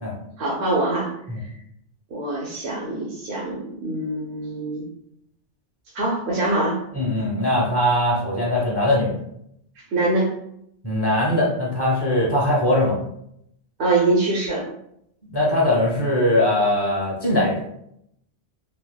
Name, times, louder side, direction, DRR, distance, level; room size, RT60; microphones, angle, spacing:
voice 1, 0.4-1.1 2.1-4.8 5.9-6.8 9.9-10.3 13.8-14.7, right 2 dB, 75° right, -4 dB, 0.9 m, -23 dB
voice 2, 6.9-9.2 10.8-13.0 15.3-17.6, left 1 dB, 25° left, -3 dB, 0.6 m, -21 dB
3.4 x 2.4 x 2.2 m, 0.75 s
omnidirectional pair, 1.1 m